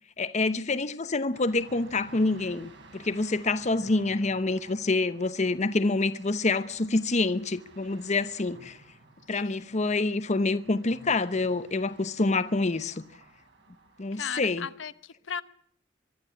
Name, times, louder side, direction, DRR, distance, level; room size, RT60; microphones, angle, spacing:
voice 1, 0.2-8.8 9.3-13.0 14.0-14.7, left 3 dB, 40° left, 0.8 m, -27 dB
sound 1, 1.3-14.7, right 2 dB, 65° right, 4.6 m, -54 dB
voice 2, 9.3-9.7 14.1-15.4, left 7 dB, 75° left, 0.9 m, -37 dB
24.0 x 12.0 x 9.7 m
head